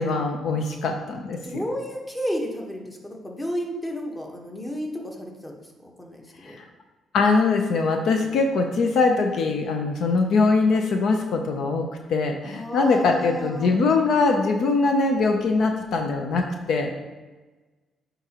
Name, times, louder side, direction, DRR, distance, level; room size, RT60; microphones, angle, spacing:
voice 1, 0.0-1.6 6.5-6.6 7.1-16.9, left 3 dB, 70° left, 4 dB, 0.6 m, -22 dB
voice 2, 1.4-6.6 12.5-13.8, equal, 15° left, 0 dB, 1.2 m, -32 dB
9.0 x 3.9 x 2.9 m, 1.2 s
cardioid pair, 90°, 0 cm